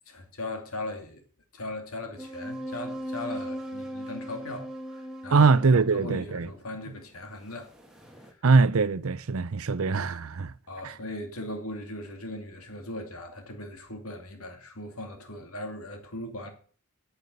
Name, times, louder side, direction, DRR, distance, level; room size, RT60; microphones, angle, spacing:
voice 1, 0.1-1.2 1.5-5.5 5.9-7.7 8.2-8.4 10.7-16.5, left 1 dB, 85° left, 2.4 m, -38 dB
sound 1, 2.2-6.0 7.6-8.3, equal, 5° right, 1.9 m, -38 dB
voice 2, 5.3-6.5 8.4-10.5 10.8-10.9, right 4 dB, 80° right, 0.6 m, -22 dB
9.3 x 8.1 x 8.1 m
head